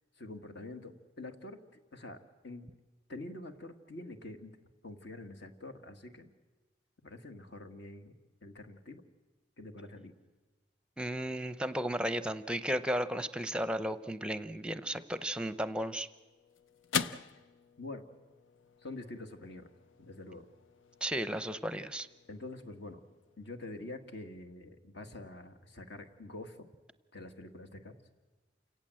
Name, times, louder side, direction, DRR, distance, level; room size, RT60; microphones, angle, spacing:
voice 1, 0.2-1.6 1.9-2.2 2.4-2.7 3.1-4.5 4.8-6.3 7.0-8.1 8.4-9.0 9.6-10.1 17.8-18.0 18.8-19.7 20.0-20.5 22.3-23.0 23.4-26.7 27.1-27.9, left 2 dB, 60° left, 6 dB, 1.9 m, -46 dB
voice 2, 11.0-16.1 21.0-22.1, equal, 5° right, 13 dB, 0.7 m, -34 dB
sound 1, 15.6-24.2, left 6 dB, 90° left, 0.7 m, -43 dB
29.0 x 17.5 x 7.8 m, 1.3 s
head